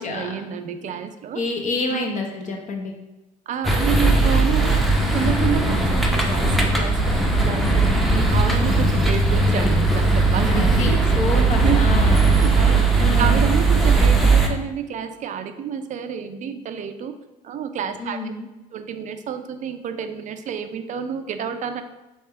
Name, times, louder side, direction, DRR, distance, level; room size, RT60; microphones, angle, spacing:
voice 1, 0.0-1.4 1.9-2.1 3.5-4.9 5.1-7.8 8.1-11.0 11.6-11.8 12.3-17.1 17.4-18.3 18.7-21.8, right 8 dB, 45° right, 8 dB, 0.4 m, -29 dB
voice 2, 1.3-3.0 10.5-12.3 13.0-13.5 18.0-18.5, left 3 dB, 45° left, 2 dB, 1.0 m, -28 dB
sound 1, 3.6-14.5, right 3 dB, ahead, 0.7 m, -18 dB
3.3 x 2.8 x 4.4 m, 1.1 s
supercardioid pair, 70°, 17 cm